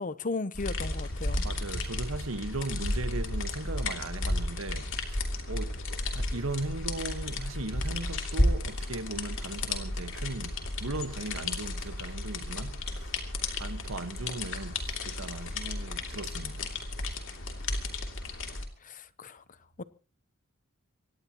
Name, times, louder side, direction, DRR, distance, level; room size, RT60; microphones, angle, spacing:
voice 1, 0.0-1.4 18.8-19.4 19.8-19.9, left 3 dB, 40° left, 0.8 m, -36 dB
sound 1, 0.5-18.6, left 2 dB, 65° left, 2.8 m, -33 dB
voice 2, 1.4-5.7 6.1-13.1 13.6-16.7, right 2 dB, 70° right, 1.4 m, -38 dB
24.5 x 18.5 x 3.0 m
head